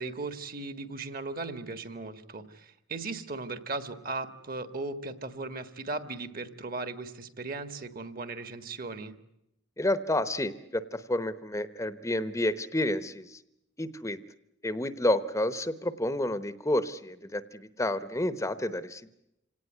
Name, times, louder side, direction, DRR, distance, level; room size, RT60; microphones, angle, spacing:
voice 1, 0.0-9.1, right 3 dB, 45° right, 11 dB, 1.7 m, -37 dB
voice 2, 9.8-13.4 13.8-14.2 14.6-19.1, left 1 dB, 15° left, 13 dB, 0.8 m, -30 dB
26.5 x 18.0 x 9.4 m, 0.84 s
head